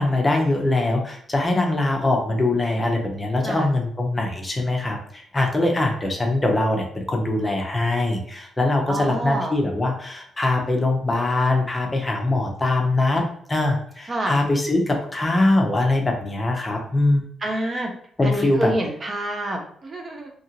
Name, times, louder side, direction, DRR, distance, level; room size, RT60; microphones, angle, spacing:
voice 1, 0.0-13.2 13.5-17.3 18.2-18.7, left 2 dB, 20° left, 1 dB, 0.7 m, -22 dB
voice 2, 8.9-9.5 14.1-14.3 17.4-17.9 18.2-20.3, right 1 dB, 35° right, 2 dB, 0.6 m, -27 dB
2.8 x 2.4 x 2.8 m, 0.62 s
cardioid pair, 95°, 0 cm